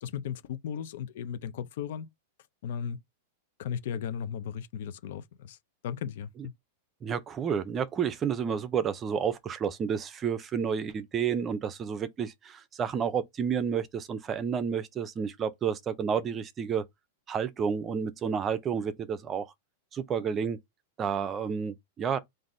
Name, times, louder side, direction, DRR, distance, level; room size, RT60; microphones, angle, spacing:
voice 1, 0.0-2.1 2.6-3.0 3.6-5.6 5.8-6.5, left 8 dB, 65° left, 0.5 m, -36 dB
voice 2, 7.0-16.8 17.3-19.5 19.9-20.6 21.0-22.2, right 7 dB, 20° right, 0.6 m, -30 dB
3.9 x 2.6 x 3.7 m
supercardioid pair, 140°, 0 cm